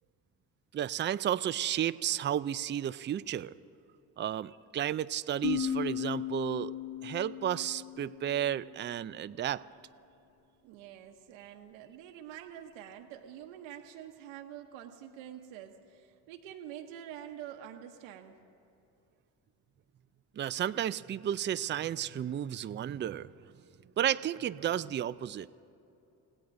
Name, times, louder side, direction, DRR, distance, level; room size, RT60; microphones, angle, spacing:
voice 1, 0.7-3.5 4.2-6.7 7.0-9.6 20.4-23.3 24.0-25.5, right 10 dB, 25° right, 14 dB, 0.4 m, -32 dB
sound 1, 5.4-9.0, left 10 dB, 50° left, 1.9 m, -37 dB
voice 2, 10.6-18.4, right 10 dB, 80° right, 3 dB, 1.0 m, -47 dB
29.5 x 16.5 x 2.6 m, 2.7 s
hypercardioid pair, 55°, 47 cm